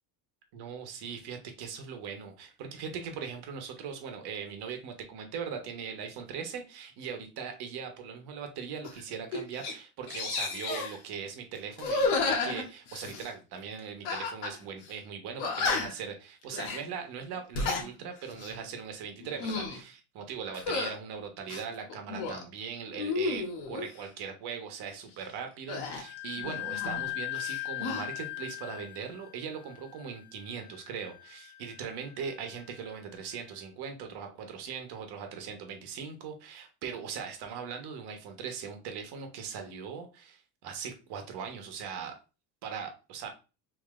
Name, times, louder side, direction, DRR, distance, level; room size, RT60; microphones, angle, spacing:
voice 1, 0.5-42.1 42.6-43.3, right 6 dB, 60° right, 5 dB, 1.2 m, -40 dB
sound 1, 8.8-9.0 9.3-9.7 10.1-11.0 11.8-13.3 14.1-14.6 14.8-14.9 15.4-16.1 16.5-16.8 17.4-17.9 18.3-18.6 19.2-19.8 20.5-21.0 21.5-22.4 22.9-23.9 25.7-27.1 27.4-28.1, left 3 dB, 65° left, 1.3 m, -32 dB
Wind instrument woodwind instrument, 25.9-33.3, left 19 dB, 85° left, 0.9 m, -40 dB
3.7 x 3.0 x 3.2 m, 0.31 s
cardioid pair, 120°, 43 cm